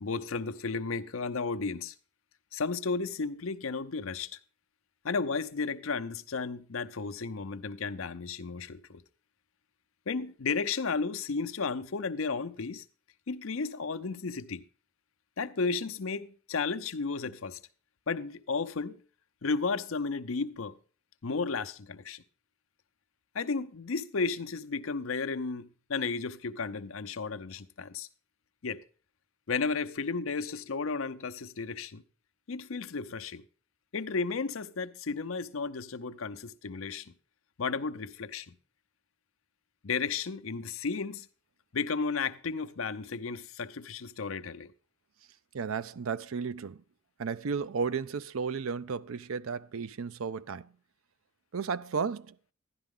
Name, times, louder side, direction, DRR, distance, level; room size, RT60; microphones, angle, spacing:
voice 1, 0.0-1.9 2.5-4.3 5.0-9.0 10.1-12.8 13.3-14.6 15.4-17.6 18.1-19.0 19.4-20.8 21.2-22.2 23.3-28.1 28.6-28.8 29.5-32.0 32.5-33.4 33.9-37.1 37.6-38.6 39.8-41.3 41.7-44.7, left 4 dB, 80° left, 0.7 m, -33 dB
voice 2, 45.5-46.8 47.2-50.7 51.5-52.3, right 5 dB, 80° right, 0.5 m, -33 dB
11.5 x 10.5 x 3.7 m
head